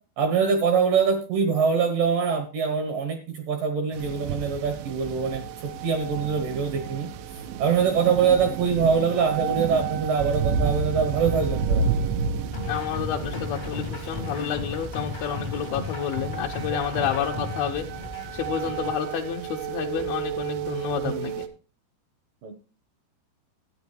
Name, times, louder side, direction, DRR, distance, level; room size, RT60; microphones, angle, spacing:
voice 1, 0.2-7.1 7.6-11.8 16.7-16.8 18.7-18.8 21.0-21.3 22.4-22.5, right 6 dB, 70° right, 6 dB, 2.1 m, -24 dB
sound 1, 3.9-21.5, right 6 dB, 90° right, 3.1 m, -31 dB
sound 2, 12.5-18.9, left 3 dB, 60° left, 0.5 m, -35 dB
voice 2, 12.7-17.9 18.3-21.5, left 8 dB, 85° left, 1 dB, 2.3 m, -29 dB
13.0 x 8.8 x 3.1 m, 0.34 s
omnidirectional pair, 5.0 m